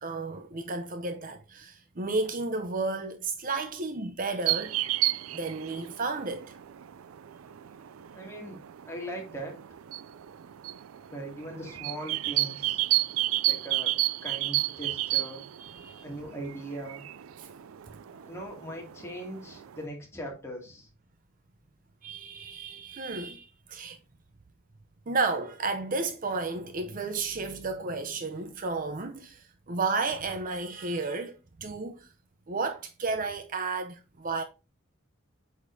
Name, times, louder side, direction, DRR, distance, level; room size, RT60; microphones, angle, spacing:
voice 1, 0.0-4.8 5.2-6.6 15.6-16.0 17.4-17.5 18.1-18.3 22.0-24.0 25.1-32.1 32.5-34.4, right 3 dB, 40° right, 0.6 m, -32 dB
sound 1, 4.5-19.8, right 16 dB, 85° right, 0.4 m, -32 dB
voice 2, 8.1-8.6 8.9-9.6 11.1-12.8 13.4-13.9 14.2-15.4 16.0-17.1 18.2-20.9, right 1 dB, 15° left, 2.3 m, -40 dB
8.2 x 5.1 x 2.7 m
head